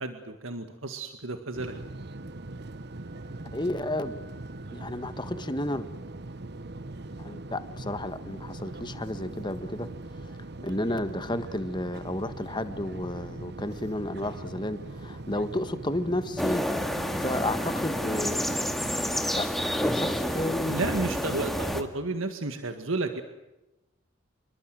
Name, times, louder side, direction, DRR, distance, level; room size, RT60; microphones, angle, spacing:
voice 1, 0.0-1.7 20.6-23.2, right 2 dB, 75° right, 7 dB, 2.0 m, -32 dB
sound 1, 1.5-19.4, right 2 dB, 55° right, 1.1 m, -41 dB
voice 2, 3.5-4.3 4.7-5.9 7.2-9.9 10.6-16.7 17.1-18.5 19.3-20.7, left 1 dB, 20° left, 11 dB, 1.6 m, -32 dB
sound 2, 16.4-21.8, equal, ahead, 2.1 m, -29 dB
27.5 x 23.0 x 7.8 m, 0.97 s
head